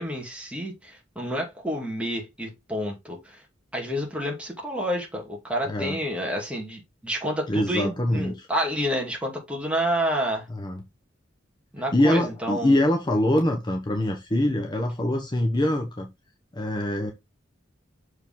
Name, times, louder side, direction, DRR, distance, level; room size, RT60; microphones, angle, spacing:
voice 1, 0.0-3.4 3.7-10.5 11.7-12.8, equal, 5° right, 2.4 m, -29 dB
voice 2, 5.7-6.0 7.5-8.5 10.5-10.8 11.9-16.1 16.5-17.1, left 1 dB, 25° left, 1.0 m, -24 dB
6.7 x 4.7 x 3.8 m
head